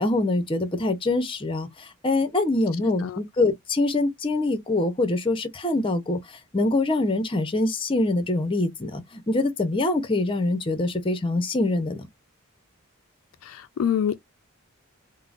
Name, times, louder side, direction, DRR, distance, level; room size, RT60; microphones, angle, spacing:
voice 1, 0.0-6.2 6.5-12.1, left 2 dB, 25° left, 0.6 m, -24 dB
voice 2, 13.4-14.2, left 8 dB, 65° left, 0.3 m, -26 dB
3.5 x 2.0 x 2.4 m
head